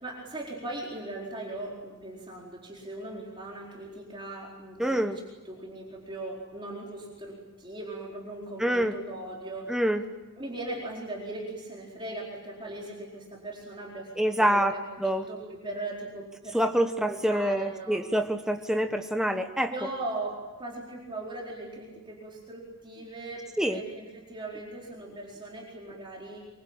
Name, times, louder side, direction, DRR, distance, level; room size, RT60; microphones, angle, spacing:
voice 1, 0.0-5.1 5.4-9.8 10.4-16.6 17.0-18.0 19.7-26.4, right 2 dB, 20° right, -3 dB, 4.4 m, -39 dB
voice 2, 4.8-5.2 8.6-8.9 9.7-10.0 14.2-15.2 16.5-19.7 23.6-23.8, right 1 dB, 5° right, 6 dB, 1.1 m, -26 dB
25.0 x 24.0 x 8.9 m, 1.2 s
head